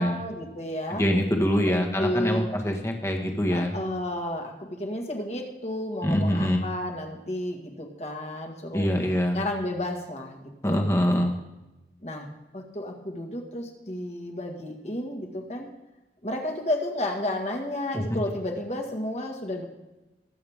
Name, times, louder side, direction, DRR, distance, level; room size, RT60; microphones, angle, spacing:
voice 1, 0.0-1.0 1.6-2.5 3.5-8.9 9.3-10.8 12.0-12.3 12.5-15.7 16.2-19.6, left 1 dB, 40° left, 2 dB, 1.8 m, -32 dB
voice 2, 0.9-3.7 6.0-6.6 8.7-9.4 10.6-11.4, equal, 15° left, 1 dB, 1.5 m, -24 dB
20.0 x 8.1 x 3.6 m, 1.0 s
head